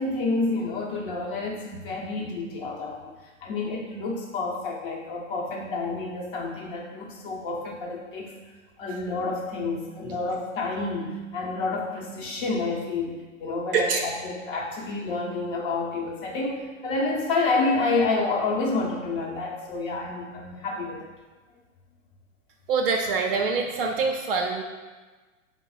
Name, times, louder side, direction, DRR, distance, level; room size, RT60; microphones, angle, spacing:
voice 1, 0.0-3.1 3.4-8.3 8.8-21.1, left 3 dB, 40° left, -2 dB, 0.9 m, -29 dB
voice 2, 22.7-24.6, right 4 dB, 45° right, 2 dB, 0.5 m, -25 dB
5.3 x 2.1 x 3.9 m, 1.3 s
figure-of-eight pair, 105°, 40 cm